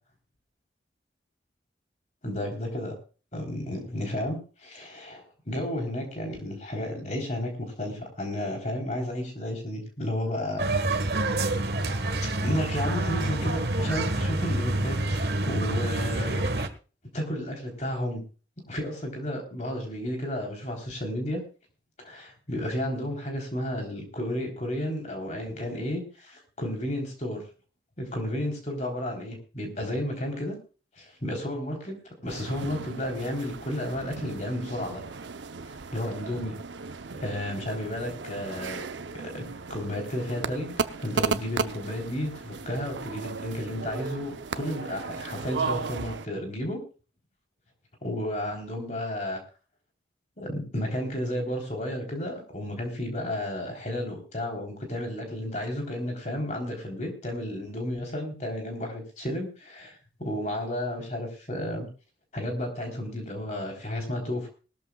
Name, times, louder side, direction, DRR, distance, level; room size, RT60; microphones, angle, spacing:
voice 1, 2.2-3.0 3.3-10.7 12.0-12.1 12.4-16.4 17.1-18.2 18.7-21.4 22.0-27.4 28.0-30.6 31.0-32.0 32.2-35.0 35.6-36.6 37.2-38.8 39.3-39.4 39.7-46.8 48.0-49.4 50.4-61.9 62.3-64.5, left 1 dB, 40° left, 2 dB, 3.6 m, -32 dB
sound 1, 10.6-16.7, right 2 dB, 60° right, 1.4 m, -27 dB
sound 2, 32.3-46.3, right 4 dB, 85° right, 0.8 m, -35 dB
20.0 x 13.5 x 2.3 m, 0.35 s
head